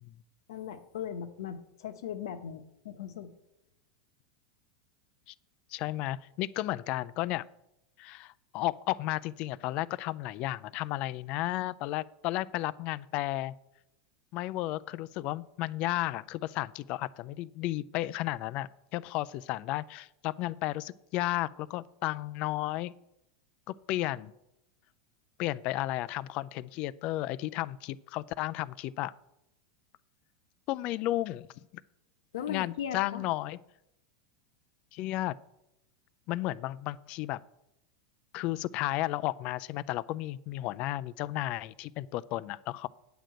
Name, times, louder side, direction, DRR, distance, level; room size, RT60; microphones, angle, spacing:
voice 1, 0.5-3.3 32.3-33.2, left 9 dB, 80° left, 9 dB, 1.0 m, -38 dB
voice 2, 5.7-7.4 8.0-13.5 14.3-22.9 23.7-24.3 25.4-29.1 30.7-31.5 32.5-33.6 34.9-35.3 36.3-37.4 38.3-42.9, left 16 dB, 50° left, 18 dB, 0.4 m, -33 dB
8.9 x 5.1 x 7.7 m, 0.86 s
supercardioid pair, 125°, 2 cm